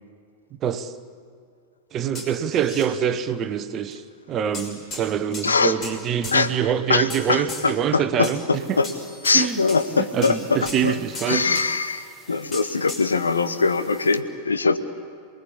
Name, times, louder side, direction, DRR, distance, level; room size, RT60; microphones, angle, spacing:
voice 1, 0.6-0.9 1.9-8.8 9.3-9.6 10.1-11.6, right 8 dB, 30° right, 1.1 m, -25 dB
sound 1, 2.1-2.9 3.9-4.0 4.5-5.0 5.3-5.9 6.2-6.4 7.1-7.7 8.2-8.4 8.8-9.0 9.2-9.4 9.7-9.9 10.2-10.4 10.6-10.8 11.1-11.7 12.5-13.0, left 2 dB, 30° left, 6.2 m, -35 dB
voice 2, 5.4-5.7 6.3-6.5 6.9-8.9 9.2-11.0 11.3-14.8, left 4 dB, 75° left, 1.1 m, -22 dB
sound 2, 8.5-14.2, right 1 dB, 10° left, 4.2 m, -52 dB
27.5 x 20.5 x 8.6 m
figure-of-eight pair, 90°, 0 cm